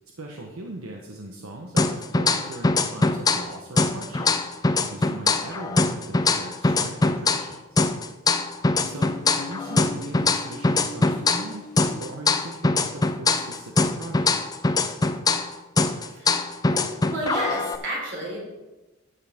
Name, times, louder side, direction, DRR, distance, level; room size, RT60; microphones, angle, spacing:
voice 1, 0.2-4.3 4.9-7.8 8.8-11.7 12.0-13.7 14.0-14.3, right 2 dB, 85° right, 1 dB, 1.0 m, -39 dB
sound 1, 1.8-3.5 3.8-7.5 7.8-11.5 11.8-15.5 15.8-17.8, left 3 dB, 20° left, 0.4 m, -22 dB
sound 2, 8.8-12.1, left 2 dB, 35° left, 1.7 m, -40 dB
voice 2, 16.0-16.3 16.6-18.4, right 1 dB, 55° right, -3 dB, 3.9 m, -31 dB
12.0 x 8.6 x 3.5 m, 1.1 s
head